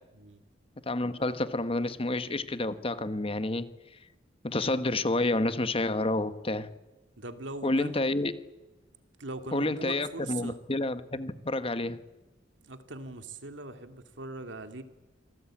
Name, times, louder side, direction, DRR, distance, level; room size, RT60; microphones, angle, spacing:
voice 1, 0.9-3.7 4.4-6.7 7.6-8.3 9.5-12.0, left 2 dB, 30° left, 12 dB, 1.3 m, -29 dB
voice 2, 7.2-8.0 9.2-10.6 12.6-14.8, right 2 dB, 85° right, 8 dB, 2.4 m, -41 dB
26.0 x 19.0 x 8.8 m, 1.1 s
head